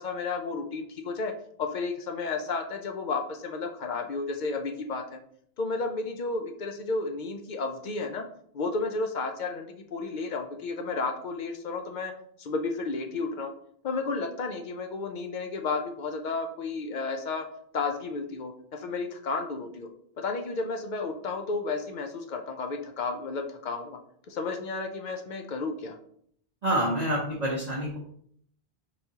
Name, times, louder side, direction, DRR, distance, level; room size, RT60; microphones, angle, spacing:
voice 1, 0.0-1.3 1.6-5.2 5.6-8.3 8.5-12.1 12.4-13.5 13.8-17.5 17.7-19.9 20.2-24.0 24.3-26.0, left 3 dB, 55° left, 5 dB, 0.6 m, -32 dB
voice 2, 26.6-28.0, right 1 dB, 40° right, -4 dB, 0.8 m, -27 dB
4.3 x 3.5 x 2.7 m, 0.65 s
omnidirectional pair, 1.1 m